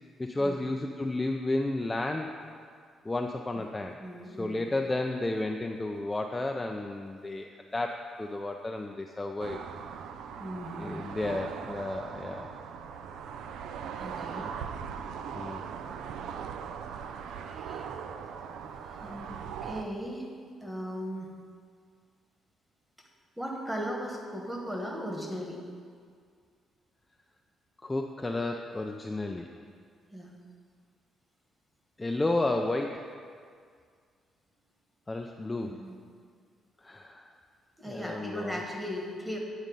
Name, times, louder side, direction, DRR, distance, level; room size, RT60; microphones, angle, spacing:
voice 1, 0.2-2.3 3.0-3.9 4.3-9.6 10.8-12.5 15.3-15.6 27.8-29.5 32.0-33.1 35.1-35.8 36.8-37.3 37.9-38.6, left 2 dB, 20° left, 3 dB, 0.4 m, -32 dB
voice 2, 4.0-4.7 10.4-11.4 14.0-14.5 17.1-17.9 18.7-19.3 19.6-20.3 20.6-21.3 23.4-25.6 30.1-30.4 35.6-36.0 37.8-39.4, equal, 5° right, 0 dB, 1.3 m, -38 dB
sound 1, 9.4-19.8, right 7 dB, 80° right, 0.3 m, -40 dB
9.1 x 4.0 x 5.2 m, 2.1 s
cardioid pair, 90°, 0 cm